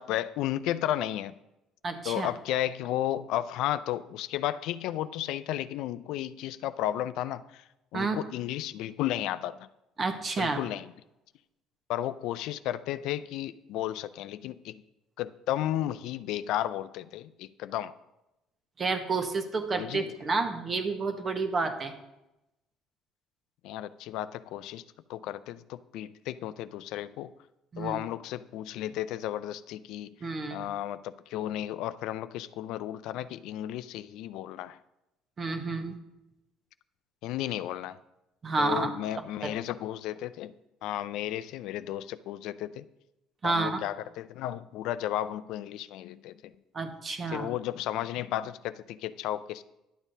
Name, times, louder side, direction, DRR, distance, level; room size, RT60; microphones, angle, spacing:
voice 1, 0.0-1.3 2.1-7.6 7.9-9.6 10.4-10.9 11.9-14.8 15.2-17.9 19.7-20.1 23.6-24.8 25.1-27.3 27.8-30.1 30.5-34.8 37.2-38.0 38.6-40.5 40.8-42.8 43.4-46.3 47.3-49.6, left 12 dB, 75° left, 14 dB, 0.3 m, -33 dB
voice 2, 1.8-2.3 7.9-8.2 10.0-10.6 18.8-21.9 27.7-28.0 30.2-30.7 35.4-36.0 38.4-38.9 39.4-39.5 43.4-43.8 46.7-47.5, right 3 dB, 30° right, 7 dB, 0.9 m, -30 dB
11.0 x 7.2 x 2.7 m, 0.93 s
cardioid pair, 115°, 0 cm